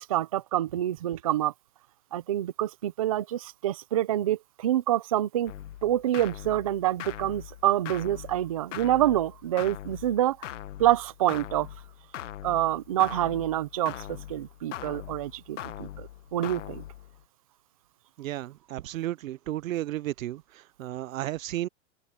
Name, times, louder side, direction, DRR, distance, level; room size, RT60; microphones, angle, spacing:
voice 1, 0.0-1.5 2.1-5.5 5.8-10.4 10.8-11.7 12.4-16.8, right 13 dB, 30° right, 0.4 m, -27 dB
sound 1, 5.5-17.2, left 13 dB, 65° left, 1.2 m, -41 dB
voice 2, 18.2-21.7, right 14 dB, 90° right, 0.7 m, -33 dB
open air
supercardioid pair, 170°, 39 cm